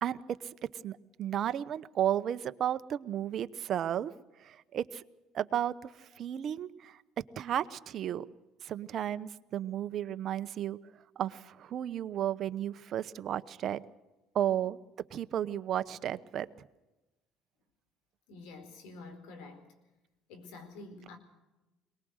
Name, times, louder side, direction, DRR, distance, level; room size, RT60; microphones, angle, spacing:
voice 1, 0.0-4.1 4.4-5.0 5.3-7.0 7.4-8.3 8.6-10.8 11.2-13.8 14.3-14.8 15.1-16.5, right 10 dB, 50° right, 13 dB, 0.9 m, -33 dB
voice 2, 18.3-19.7 20.3-21.2, left 3 dB, 80° left, 7 dB, 4.5 m, -48 dB
22.5 x 19.5 x 6.5 m, 1.0 s
supercardioid pair, 100°, 0 cm